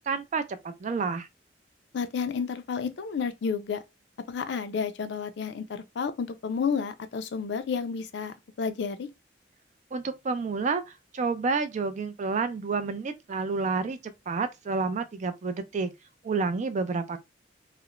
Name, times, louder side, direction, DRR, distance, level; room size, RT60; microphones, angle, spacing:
voice 1, 0.1-1.3 9.9-15.9 16.2-17.2, right 4 dB, 40° right, 0.4 m, -29 dB
voice 2, 1.9-3.8 4.3-9.1, left 6 dB, 65° left, 0.4 m, -31 dB
2.4 x 2.0 x 2.9 m
head